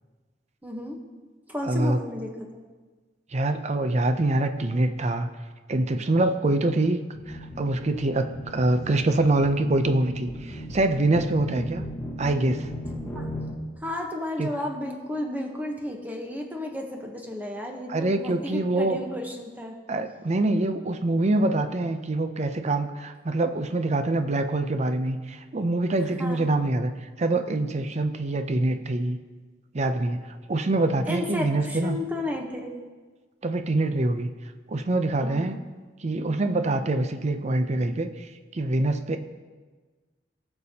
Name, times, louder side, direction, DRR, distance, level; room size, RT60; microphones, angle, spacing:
voice 1, 0.6-1.0 1.5-2.6 13.1-13.3 13.8-19.7 26.2-26.5 31.1-32.8 35.2-35.5, left 1 dB, 10° right, 1 dB, 1.0 m, -33 dB
voice 2, 1.6-2.0 3.3-5.3 5.7-7.0 7.3-11.8 12.2-12.7 14.4-14.5 17.9-19.0 19.9-26.9 27.2-29.2 29.7-32.0 33.4-34.3 34.7-35.6 36.0-38.3 38.5-39.2, right 2 dB, 40° right, 8 dB, 0.5 m, -25 dB
sound 1, 7.1-13.5, equal, 15° left, 1.3 m, -36 dB
16.5 x 6.8 x 2.8 m, 1.4 s
head